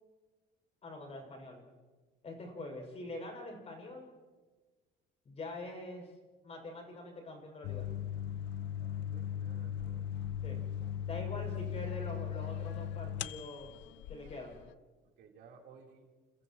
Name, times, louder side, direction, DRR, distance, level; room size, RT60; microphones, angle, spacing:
voice 1, 0.8-1.7 2.2-4.1 5.2-6.1 6.4-7.9 10.4-10.6 11.0-13.7 14.1-14.6, left 2 dB, 35° left, 2 dB, 6.4 m, -44 dB
sound 1, 7.6-14.7, left 9 dB, 70° left, 0.6 m, -38 dB
voice 2, 9.1-10.1 11.4-11.6 15.2-16.1, right 6 dB, 70° right, 0 dB, 3.8 m, -57 dB
29.5 x 29.0 x 3.1 m, 1.3 s
cardioid pair, 145°, 19 cm